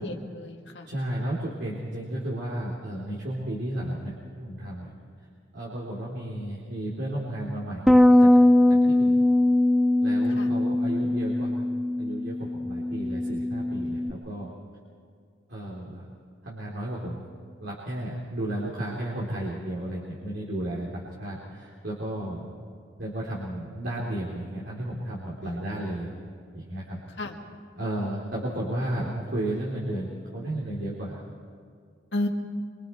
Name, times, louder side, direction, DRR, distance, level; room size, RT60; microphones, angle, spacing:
voice 1, 0.0-0.9 10.4-10.5 25.4-25.8 27.2-27.4 32.1-32.3, left 1 dB, 65° left, 2 dB, 2.0 m, -33 dB
voice 2, 0.9-4.9 5.5-8.3 8.7-9.2 10.0-11.5 12.0-14.5 15.5-16.1 16.4-17.2 17.6-22.5 23.0-26.1 26.5-27.0 27.7-31.2, right 1 dB, 60° right, -5 dB, 3.6 m, -33 dB
Bass guitar, 7.9-14.1, left 1 dB, ahead, 0.4 m, -21 dB
25.5 x 25.0 x 4.6 m, 2.2 s
head